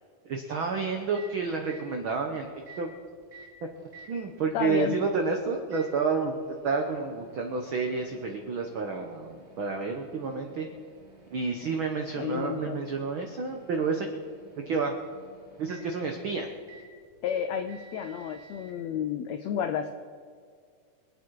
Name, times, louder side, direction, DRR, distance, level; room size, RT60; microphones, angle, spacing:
voice 1, 0.2-2.5 2.8-2.9 3.6-6.3 6.6-10.7 11.3-14.1 14.7-14.9 15.6-16.5, right 4 dB, 85° right, 3 dB, 1.1 m, -30 dB
Microwave oven, 1.0-18.7, right 3 dB, 20° right, 2.4 m, -54 dB
voice 2, 4.5-5.0 12.2-12.9 17.2-19.9, left 8 dB, 85° left, 8 dB, 1.5 m, -31 dB
25.5 x 8.9 x 4.7 m, 2.1 s
omnidirectional pair, 3.9 m